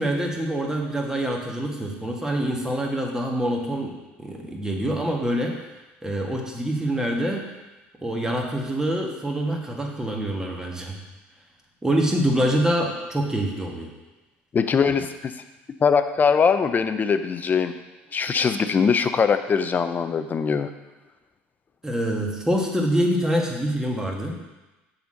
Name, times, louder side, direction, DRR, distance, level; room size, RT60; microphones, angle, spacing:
voice 1, 0.0-5.6 6.0-7.5 8.0-11.0 11.8-13.9 21.8-24.3, right 1 dB, 10° right, 0 dB, 1.6 m, -25 dB
voice 2, 14.5-15.3 15.8-17.7 18.1-20.7, left 6 dB, 30° left, 9 dB, 0.6 m, -21 dB
6.9 x 4.2 x 6.4 m, 1.1 s
hypercardioid pair, 75°, 6 cm